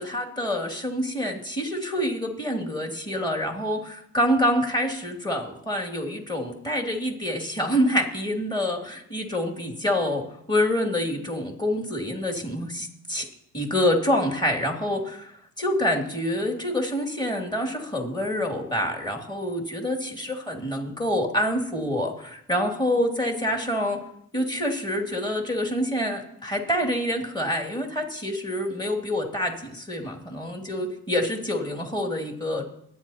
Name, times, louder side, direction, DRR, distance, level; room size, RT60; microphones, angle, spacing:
voice 1, 0.0-13.3 13.5-24.0 24.3-32.6, left 1 dB, 15° left, 1 dB, 2.5 m, -27 dB
24.5 x 9.2 x 2.9 m, 0.72 s
cardioid pair, 90°, 30 cm